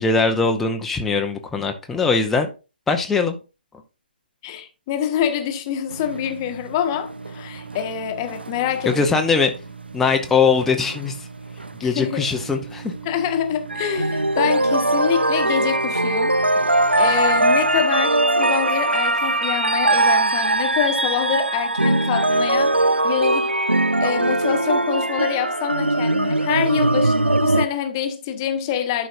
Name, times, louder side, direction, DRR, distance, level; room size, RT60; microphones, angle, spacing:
voice 1, 0.0-2.5 2.9-3.4 8.9-9.5 9.9-11.3 11.8-12.9, left 4 dB, 5° left, 0.6 m, -21 dB
voice 2, 4.4-9.1 11.8-12.2 13.0-23.5 24.0-29.1, left 9 dB, 25° left, 1.0 m, -26 dB
sound 1, 5.9-17.8, right 4 dB, 75° right, 0.9 m, -38 dB
sound 2, 13.7-27.7, right 2 dB, 90° right, 0.4 m, -20 dB
11.5 x 5.1 x 2.6 m
figure-of-eight pair, 140°, 6 cm